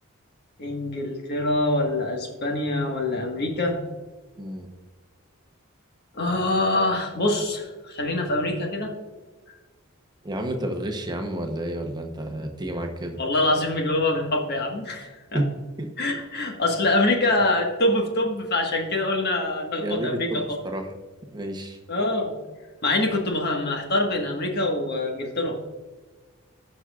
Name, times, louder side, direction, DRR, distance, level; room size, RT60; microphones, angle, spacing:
voice 1, 0.6-3.8 6.1-8.9 13.2-15.4 16.0-20.4 21.9-22.3 22.8-25.6, left 2 dB, 50° left, 1 dB, 1.6 m, -25 dB
voice 2, 4.4-4.7 10.2-13.2 15.3-15.5 15.8-15.9 19.8-20.9 21.3-21.8, right 1 dB, 20° right, 4 dB, 0.9 m, -30 dB
16.0 x 6.2 x 2.4 m, 1.3 s
head